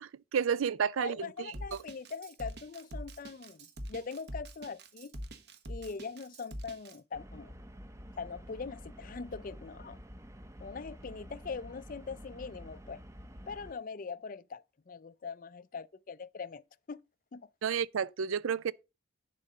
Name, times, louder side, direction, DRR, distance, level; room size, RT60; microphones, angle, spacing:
voice 1, 0.0-1.8 17.6-18.7, right 7 dB, 85° right, 0.4 m, -31 dB
voice 2, 1.0-5.1 5.7-7.5 8.2-10.0 10.6-13.0 13.5-16.6 16.9-17.0 17.3-17.5, left 5 dB, 40° left, 0.4 m, -42 dB
Drum kit, 1.5-7.0, equal, 55° right, 1.1 m, -44 dB
sound 1, 7.1-13.7, equal, 15° right, 0.7 m, -49 dB
11.0 x 3.9 x 6.6 m
head